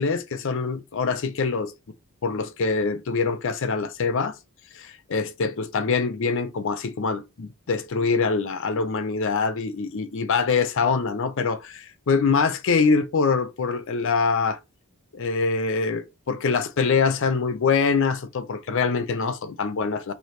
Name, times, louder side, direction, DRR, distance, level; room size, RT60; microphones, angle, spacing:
voice 1, 0.0-1.7 2.2-4.4 4.7-14.6 15.1-20.1, left 4 dB, 60° left, 0.5 m, -24 dB
3.1 x 3.0 x 4.2 m
head